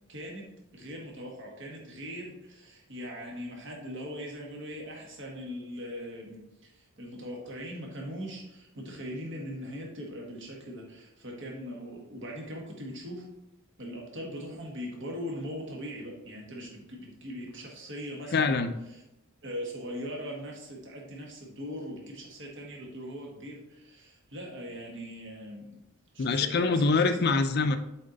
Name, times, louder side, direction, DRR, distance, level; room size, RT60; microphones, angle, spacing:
voice 1, 0.1-13.3 13.8-18.6 18.9-19.0 19.4-25.8 26.1-26.9 27.3-27.4, equal, 60° right, -1 dB, 1.7 m, -40 dB
voice 2, 18.3-18.7 26.2-27.8, left 4 dB, 50° left, 9 dB, 0.5 m, -24 dB
7.3 x 4.3 x 4.0 m, 0.90 s
head